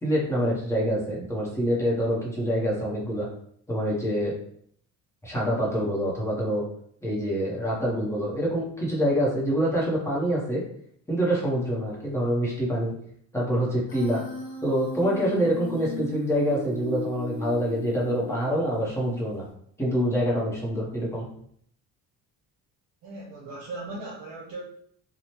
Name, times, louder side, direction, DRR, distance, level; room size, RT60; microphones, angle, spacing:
voice 1, 0.0-3.3 3.7-4.3 5.2-6.6 7.0-10.6 11.1-12.9 13.3-14.2 14.6-19.5 19.8-21.3, equal, 10° left, -5 dB, 0.7 m, -26 dB
Human voice, 13.9-18.9, left 2 dB, 65° left, 0.9 m, -37 dB
voice 2, 23.0-24.6, right 2 dB, 65° right, -4 dB, 0.7 m, -38 dB
3.0 x 2.0 x 2.8 m, 0.64 s
cardioid pair, 170°, 36 cm